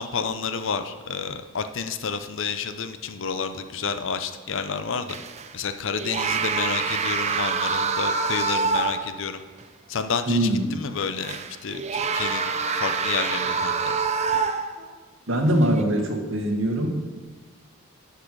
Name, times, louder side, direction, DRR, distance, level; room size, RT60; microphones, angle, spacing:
voice 1, 0.0-5.2 5.5-9.4 9.9-12.5 12.8-13.7, left 5 dB, 65° left, 10 dB, 0.6 m, -30 dB
sound 1, 5.1-5.5 6.0-9.2 9.6-9.7 11.2-14.9 15.6-15.8, right 5 dB, 30° right, 0.5 m, -26 dB
voice 2, 10.3-10.8 15.3-17.2, right 1 dB, 65° right, 3 dB, 1.5 m, -23 dB
10.0 x 5.6 x 6.3 m, 1.4 s
head